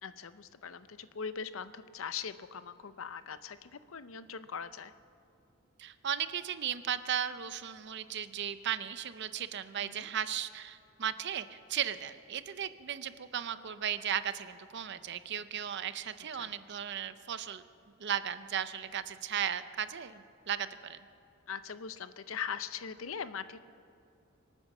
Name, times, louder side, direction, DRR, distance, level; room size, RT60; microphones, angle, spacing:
voice 1, 0.0-4.9 9.8-10.1 16.3-16.5 21.5-23.6, left 6 dB, 80° left, 13 dB, 0.6 m, -41 dB
voice 2, 5.8-17.6 18.0-21.0, right 9 dB, 60° right, 13 dB, 0.6 m, -36 dB
25.0 x 9.1 x 6.1 m, 2.7 s
head